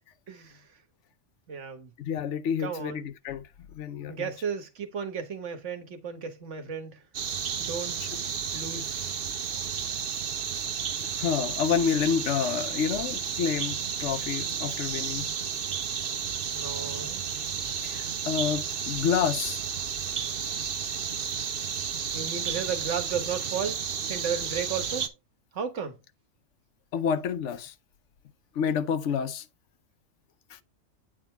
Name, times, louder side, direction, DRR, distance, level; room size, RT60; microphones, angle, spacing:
voice 1, 0.3-0.6 1.5-1.9 2.6-3.0 4.1-7.0 7.6-8.0 8.5-9.2 16.5-17.2 22.1-23.8 24.1-25.1 25.5-26.0, right 6 dB, 75° right, 1.5 m, -34 dB
voice 2, 2.0-3.5 3.7-4.3 8.0-8.1 11.2-15.3 17.8-19.6 26.9-27.7 28.6-29.4 30.5-30.6, left 7 dB, 75° left, 1.0 m, -29 dB
sound 1, 7.1-25.1, right 7 dB, 55° right, 0.9 m, -32 dB
8.7 x 3.7 x 4.4 m
omnidirectional pair, 1.2 m